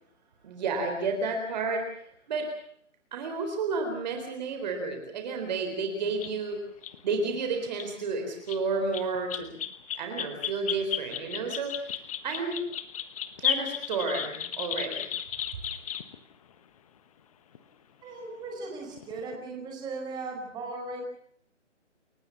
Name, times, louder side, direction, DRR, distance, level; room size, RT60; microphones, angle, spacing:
voice 1, 0.4-2.5 3.1-6.6 7.0-9.5 10.0-12.6 13.4-15.1, right 4 dB, 35° right, 4 dB, 4.1 m, -31 dB
sound 1, 6.2-6.3 6.8-6.9 7.7-7.9 8.5-8.6 8.9-16.2 17.5-17.6 19.0-19.3, left 10 dB, 30° left, 1.5 m, -34 dB
voice 2, 18.0-21.0, right 3 dB, 10° right, 1 dB, 5.1 m, -37 dB
29.5 x 15.0 x 7.1 m, 0.67 s
hypercardioid pair, 155°, 37 cm